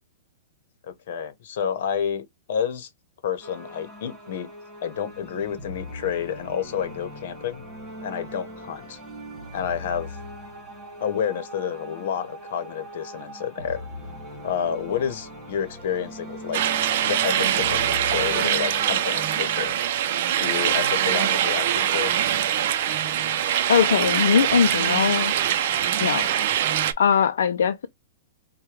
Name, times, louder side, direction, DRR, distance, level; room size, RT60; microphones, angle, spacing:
voice 1, 1.1-2.9 3.2-4.5 4.8-7.6 8.0-9.0 9.5-10.2 11.0-13.8 14.4-16.6 17.0-19.8 20.4-22.1, left 8 dB, 65° left, 0.9 m, -29 dB
sound 1, 3.4-19.7, equal, 10° right, 2.3 m, -40 dB
sound 2, 16.5-26.9, right 10 dB, 60° right, 0.5 m, -23 dB
voice 2, 23.7-25.3 26.0-26.3 27.0-27.9, left 7 dB, 85° left, 0.4 m, -20 dB
4.5 x 2.2 x 3.3 m
hypercardioid pair, 145°, 0 cm